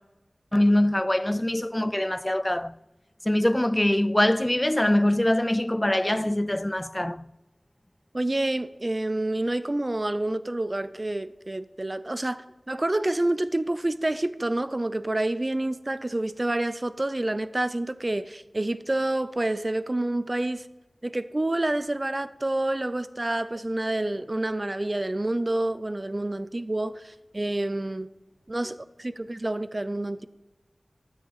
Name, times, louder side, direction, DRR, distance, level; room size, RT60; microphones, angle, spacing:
voice 1, 0.5-2.8 3.3-7.3, left 1 dB, 20° left, 0.3 m, -23 dB
voice 2, 8.1-20.7 21.0-28.1 28.5-30.3, right 1 dB, 40° right, 0.6 m, -28 dB
13.0 x 9.2 x 4.0 m
wide cardioid pair, 55°, 0 cm